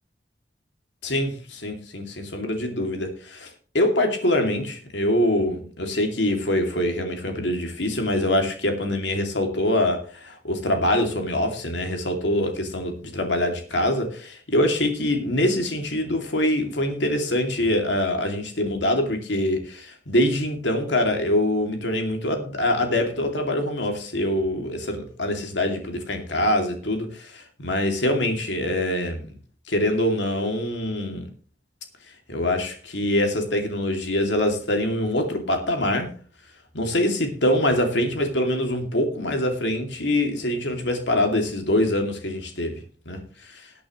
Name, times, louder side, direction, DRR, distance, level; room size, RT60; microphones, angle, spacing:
voice 1, 1.0-3.5 3.7-29.3 29.7-31.3 32.3-36.1 36.7-42.8 43.1-43.2 43.5-43.6, left 1 dB, 80° left, 4 dB, 2.5 m, -24 dB
20.0 x 8.7 x 3.1 m, 0.39 s
head